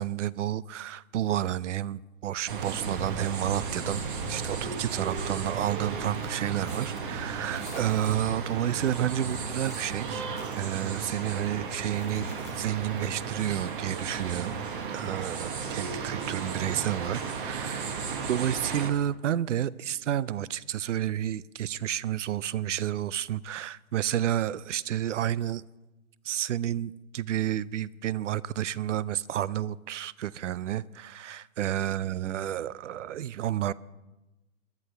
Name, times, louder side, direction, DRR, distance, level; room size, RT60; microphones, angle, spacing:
voice 1, 0.0-4.0 4.3-14.5 14.9-17.9 18.3-25.6 26.2-33.7, right 11 dB, 60° right, 0.5 m, -30 dB
sound 1, 2.5-18.9, right 5 dB, 35° right, 1.3 m, -34 dB
sound 2, 5.6-7.2 7.5-8.3 8.6-10.6 11.4-11.5 11.9-13.2, left 8 dB, 10° left, 0.5 m, -54 dB
22.5 x 11.5 x 3.3 m
hypercardioid pair, 155°, 42 cm